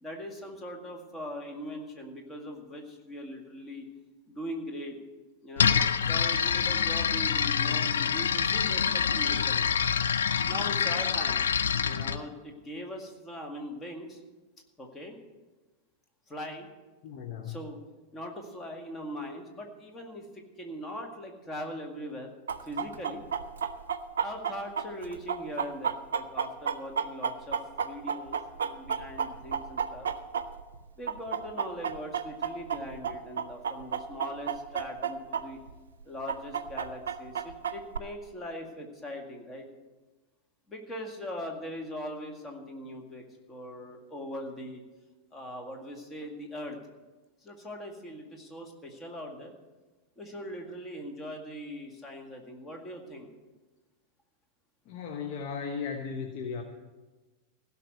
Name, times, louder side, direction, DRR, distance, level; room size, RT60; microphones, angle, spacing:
voice 1, 0.0-3.9 4.3-5.0 5.4-5.8 6.0-9.7 10.5-11.4 11.8-14.2 14.8-15.2 16.3-16.7 17.4-17.8 18.1-22.3 22.6-23.2 24.2-30.1 31.0-35.6 36.1-39.7 40.7-44.8 45.3-46.8 47.4-49.5 50.2-53.3, equal, 20° left, 2 dB, 2.0 m, -40 dB
sound 1, 5.6-12.2, left 7 dB, 65° left, 0.5 m, -26 dB
voice 2, 17.0-17.6 54.9-56.6, left 6 dB, 45° left, 3 dB, 1.0 m, -36 dB
Chicken rooster, 22.5-30.8 31.1-35.4 35.7-35.8 36.3-38.0, right 7 dB, 65° right, 0.6 m, -31 dB
16.0 x 5.9 x 7.7 m, 1.2 s
figure-of-eight pair, 90°, 0 cm